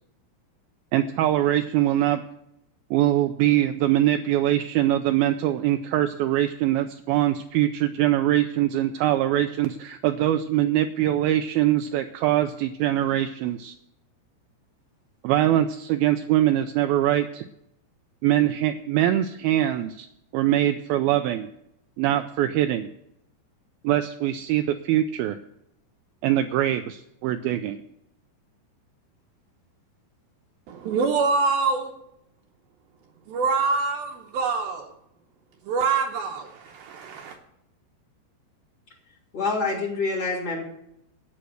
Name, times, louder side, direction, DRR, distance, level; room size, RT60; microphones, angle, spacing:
voice 1, 0.9-2.2 2.9-13.8 15.2-17.5 18.2-20.1 20.3-21.5 22.0-22.9 23.8-25.4 26.2-27.8, right 13 dB, 90° right, 8 dB, 2.1 m, -23 dB
voice 2, 30.7-31.9 33.3-34.9 35.7-37.4, right 4 dB, 75° right, 3 dB, 2.4 m, -25 dB
voice 3, 39.3-40.6, left 3 dB, 35° left, -3 dB, 3.5 m, -26 dB
10.0 x 9.0 x 8.0 m, 0.78 s
omnidirectional pair, 4.9 m